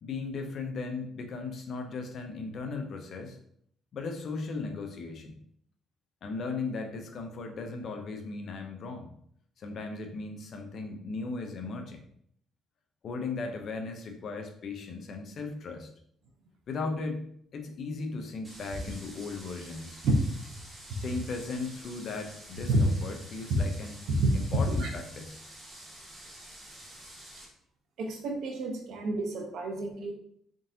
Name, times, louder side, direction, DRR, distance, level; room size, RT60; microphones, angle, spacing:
voice 1, 0.0-3.4 3.9-5.4 6.2-9.1 9.6-12.0 13.0-15.9 16.7-17.3 17.5-20.0 20.9-24.0 24.3-25.4, left 3 dB, 55° left, 5 dB, 0.7 m, -37 dB
sound 1, 18.4-27.5, right 1 dB, 15° right, 1.4 m, -49 dB
voice 2, 28.0-30.1, right 2 dB, 75° right, 2 dB, 0.8 m, -29 dB
3.8 x 3.7 x 2.7 m, 0.67 s
cardioid pair, 110°, 0 cm